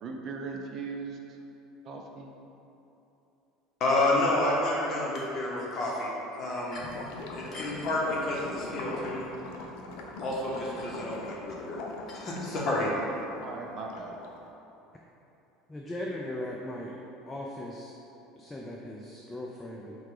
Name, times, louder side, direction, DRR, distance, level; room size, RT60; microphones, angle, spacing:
voice 1, 0.0-1.2 1.8-2.3 13.4-14.2, right 4 dB, 45° right, 1 dB, 0.5 m, -38 dB
voice 2, 3.8-6.9 7.3-9.3 10.2-11.8 12.1-12.9, left 2 dB, 40° left, -4 dB, 1.1 m, -29 dB
Gurgling / Liquid, 6.7-14.5, left 2 dB, 75° left, 0.5 m, -42 dB
voice 3, 15.7-16.9 17.3-17.9 18.3-20.0, left 1 dB, 15° left, -2 dB, 0.4 m, -38 dB
4.7 x 2.3 x 4.8 m, 3.0 s
supercardioid pair, 105°, 0 cm